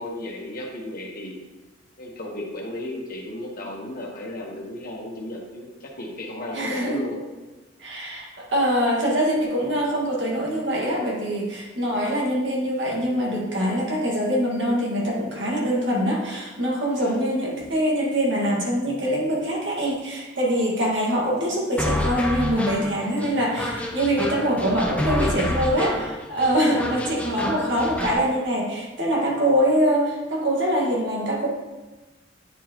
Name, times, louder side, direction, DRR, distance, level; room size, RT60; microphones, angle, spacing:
voice 1, 0.0-1.4 2.0-7.2 13.1-13.4 16.9-17.1 22.8-23.0, left 1 dB, 50° left, -1 dB, 1.2 m, -35 dB
voice 2, 6.5-7.1 7.8-31.5, equal, 75° right, -2 dB, 1.6 m, -24 dB
sound 1, 21.8-28.2, left 1 dB, 5° left, 0.6 m, -28 dB
9.0 x 4.6 x 2.9 m, 1.1 s
head